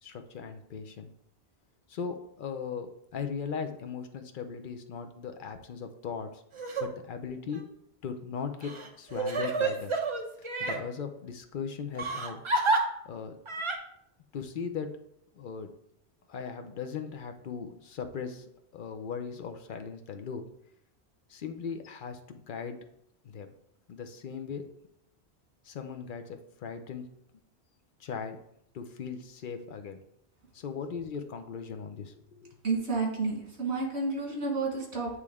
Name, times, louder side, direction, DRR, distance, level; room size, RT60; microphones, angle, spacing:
voice 1, 0.0-1.1 1.9-6.4 6.8-7.6 8.0-10.0 10.6-12.4 13.0-13.4 14.3-15.0 15.3-15.7 16.3-18.4 18.7-20.4 21.3-22.8 23.2-23.5 23.9-24.6 25.6-27.1 28.0-28.4 28.7-30.0 30.5-32.5, left 6 dB, 55° left, 7 dB, 0.8 m, -38 dB
Crying sobbing, 6.5-6.9 7.5-7.6 8.6-10.8 12.0-12.8 13.5-13.8, right 3 dB, 35° right, 0.7 m, -29 dB
voice 2, 32.6-35.2, right 3 dB, 80° right, -2 dB, 2.0 m, -30 dB
8.4 x 3.2 x 3.5 m, 0.75 s
omnidirectional pair, 1.1 m